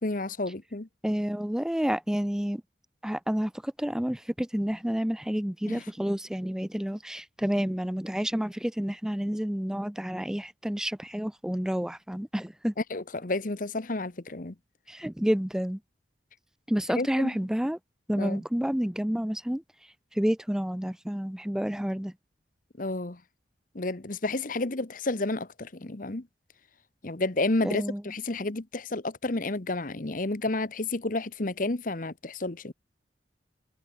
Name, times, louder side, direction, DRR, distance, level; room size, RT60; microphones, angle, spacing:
voice 1, 0.0-0.9 5.7-5.8 12.9-14.5 17.0-17.3 18.1-18.4 22.8-23.2 23.7-26.3 27.0-32.7, left 2 dB, 50° left, 1.1 m, -31 dB
voice 2, 1.0-2.6 3.0-12.7 14.9-15.8 16.7-17.8 18.1-19.6 20.1-22.1 27.6-28.0, equal, 5° right, 0.4 m, -29 dB
head